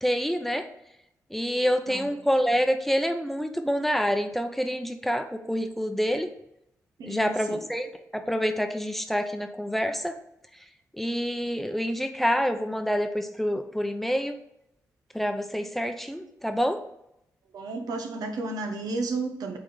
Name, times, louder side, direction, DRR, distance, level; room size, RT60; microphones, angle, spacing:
voice 1, 0.0-0.7 1.3-6.3 7.0-10.1 11.0-14.4 15.1-16.8, equal, 5° left, 6 dB, 0.7 m, -27 dB
voice 2, 1.6-2.1 7.0-7.6 17.5-19.6, right 3 dB, 90° right, 4 dB, 1.1 m, -33 dB
8.1 x 3.6 x 4.0 m, 0.80 s
cardioid pair, 75°, 6 cm